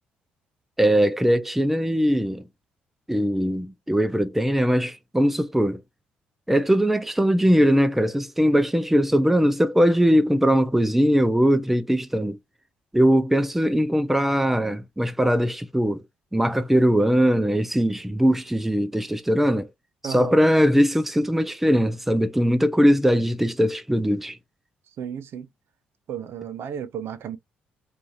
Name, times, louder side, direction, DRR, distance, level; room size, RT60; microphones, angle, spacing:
voice 1, 0.8-2.4 3.1-5.8 6.5-12.4 12.9-16.0 16.3-19.7 20.0-24.4, equal, 5° right, 0.4 m, -20 dB
voice 2, 25.0-25.5 26.1-27.4, right 8 dB, 60° right, 0.6 m, -33 dB
3.0 x 2.4 x 2.5 m
hypercardioid pair, 60°, 4 cm